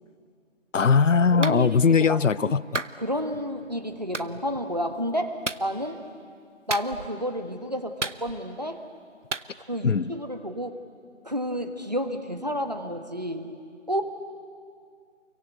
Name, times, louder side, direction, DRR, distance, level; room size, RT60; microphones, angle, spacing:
voice 1, 0.7-2.8 9.8-10.2, left 5 dB, 80° left, 19 dB, 0.6 m, -20 dB
voice 2, 1.3-2.6 3.0-6.0 6.7-8.8 9.7-10.8 11.2-13.5 13.9-14.0, equal, 35° right, 6 dB, 1.4 m, -30 dB
Clapping, 1.4-1.6 2.7-3.0 4.1-4.3 5.4-5.7 6.7-7.2 8.0-8.6 9.3-9.5, right 3 dB, 70° right, 1.0 m, -31 dB
28.5 x 23.5 x 8.1 m, 2.2 s
figure-of-eight pair, 175°, 37 cm